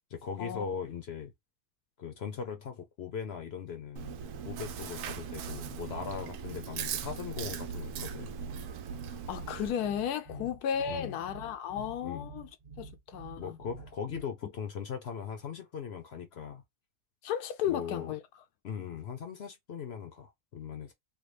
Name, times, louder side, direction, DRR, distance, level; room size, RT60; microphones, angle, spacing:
voice 1, 0.1-1.3 2.0-4.2 4.4-8.4 10.3-10.5 10.9-11.2 11.8-12.3 13.4-16.6 17.7-18.1 18.6-20.9, left 7 dB, 55° left, 0.8 m, -39 dB
Chewing mastication, 4.0-9.7, right 7 dB, 80° right, 1.1 m, -39 dB
sound 1, 5.2-14.2, right 4 dB, 55° right, 0.3 m, -48 dB
voice 2, 9.3-12.5 12.8-13.6 17.2-18.2, left 9 dB, 85° left, 1.1 m, -34 dB
3.4 x 2.3 x 3.1 m
omnidirectional pair, 1.6 m